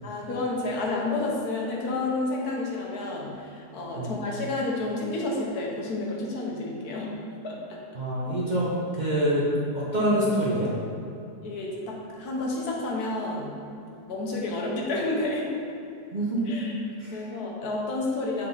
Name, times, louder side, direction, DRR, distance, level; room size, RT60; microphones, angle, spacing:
voice 1, 0.0-7.1 7.4-7.6 11.4-13.6 14.1-15.5 16.4-16.7 17.1-18.5, left 2 dB, 70° left, -2 dB, 1.5 m, -30 dB
voice 2, 7.9-9.4 9.7-10.7 16.1-16.5 17.0-17.2, right 1 dB, 30° right, -7 dB, 1.0 m, -26 dB
7.7 x 4.2 x 4.0 m, 2.7 s
omnidirectional pair, 1.7 m